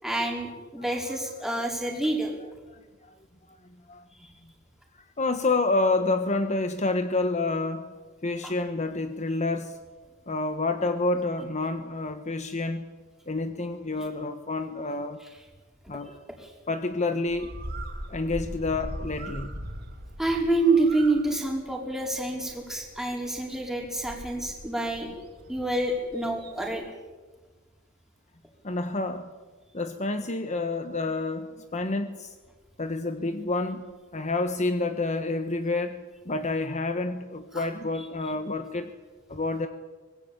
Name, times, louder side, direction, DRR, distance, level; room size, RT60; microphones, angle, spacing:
voice 1, 0.0-2.3 4.2-4.3 8.4-8.5 16.4-16.5 20.2-25.1 25.5-26.8 37.5-37.6, right 2 dB, ahead, 0 dB, 5.2 m, -27 dB
voice 2, 0.8-1.2 2.7-2.8 3.5-3.6 3.9-4.0 4.9-7.9 8.2-9.8 10.3-12.9 13.3-15.2 15.9-16.2 16.7-17.5 18.1-19.5 28.6-29.3 29.7-32.3 32.8-33.8 34.1-38.9 39.3-39.7, left 2 dB, 35° left, 8 dB, 1.3 m, -29 dB
Bird, 17.3-26.8, right 1 dB, 50° right, 4.0 m, -41 dB
25.0 x 20.5 x 8.9 m, 1.3 s
head